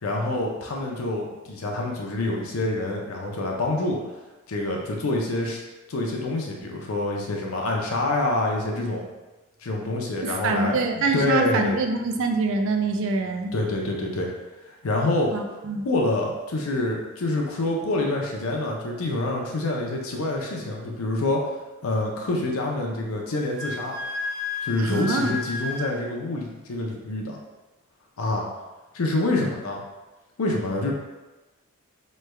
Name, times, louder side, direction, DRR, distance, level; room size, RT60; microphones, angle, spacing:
voice 1, 0.0-4.0 4.5-5.6 5.9-9.0 9.6-11.8 13.5-14.3 14.7-15.3 15.8-21.4 21.8-24.0 24.6-27.4 28.2-28.5 28.9-29.8 30.4-30.9, left 2 dB, 75° left, 0 dB, 0.6 m, -26 dB
voice 2, 10.2-13.5 15.3-15.9 24.8-25.4, right 3 dB, 60° right, 5 dB, 0.4 m, -25 dB
Wind instrument woodwind instrument, 23.3-25.9, left 4 dB, 20° right, 0.9 m, -32 dB
3.2 x 2.3 x 3.2 m, 1.1 s
head